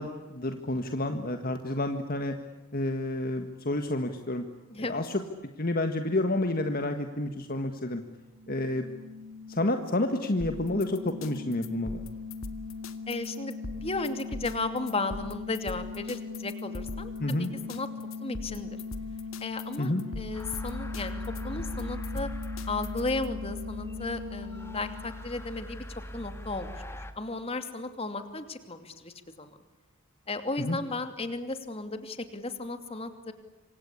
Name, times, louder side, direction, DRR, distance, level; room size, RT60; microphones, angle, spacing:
voice 1, 0.0-2.3 2.7-4.4 4.8-5.2 5.6-8.0 8.5-8.9 9.5-12.0 17.2-17.5 19.8-20.0 30.6-30.8, left 1 dB, 45° left, 6 dB, 1.7 m, -29 dB
voice 2, 4.7-5.0 13.1-17.9 18.2-18.8 19.4-21.2 21.4-22.3 22.7-25.8 26.1-26.7 27.2-29.6 30.3-33.3, left 2 dB, 25° left, 8 dB, 2.7 m, -35 dB
sound 1, 8.3-25.8, left 4 dB, 65° right, 5.3 m, -40 dB
sound 2, 10.4-23.3, left 2 dB, 70° left, 1.9 m, -42 dB
sound 3, 20.3-27.1, equal, 10° left, 1.8 m, -40 dB
27.5 x 25.5 x 8.5 m, 1.1 s
head